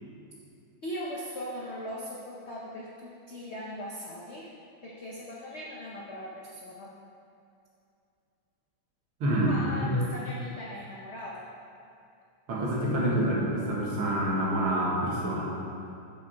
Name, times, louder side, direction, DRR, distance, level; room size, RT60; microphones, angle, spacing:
voice 1, 0.8-4.5 4.8-7.0 9.3-11.5, left 1 dB, 75° left, -4 dB, 0.6 m, -39 dB
voice 2, 9.2-9.6 9.8-10.0 12.5-15.5, right 1 dB, 85° right, -5 dB, 2.3 m, -27 dB
7.4 x 5.8 x 4.4 m, 2.6 s
omnidirectional pair, 2.2 m